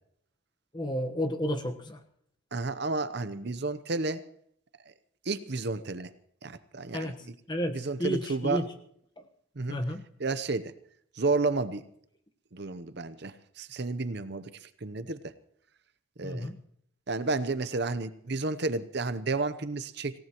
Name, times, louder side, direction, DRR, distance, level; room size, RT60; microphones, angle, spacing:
voice 1, 0.7-2.0 6.9-8.7 9.2-9.3 9.7-10.0 16.2-16.6, equal, 20° left, 6 dB, 1.1 m, -32 dB
voice 2, 2.5-4.2 5.3-6.1 6.4-7.1 7.7-8.6 9.6-9.8 10.2-10.7 11.1-11.8 12.5-15.3 16.2-16.5 17.1-20.1, right 3 dB, 50° right, 12 dB, 0.8 m, -31 dB
26.0 x 17.0 x 3.0 m, 0.67 s
head